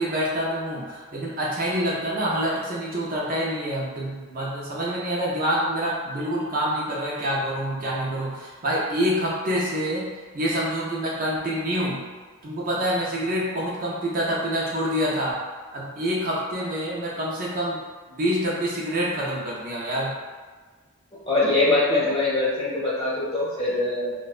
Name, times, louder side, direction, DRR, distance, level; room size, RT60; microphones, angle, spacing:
voice 1, 0.0-10.1 10.3-12.0 12.4-15.4 15.7-17.8 18.1-20.1, equal, 40° right, -6 dB, 0.5 m, -26 dB
voice 2, 21.3-24.1, left 2 dB, 25° left, -9 dB, 0.8 m, -23 dB
2.5 x 2.1 x 2.4 m, 1.4 s
head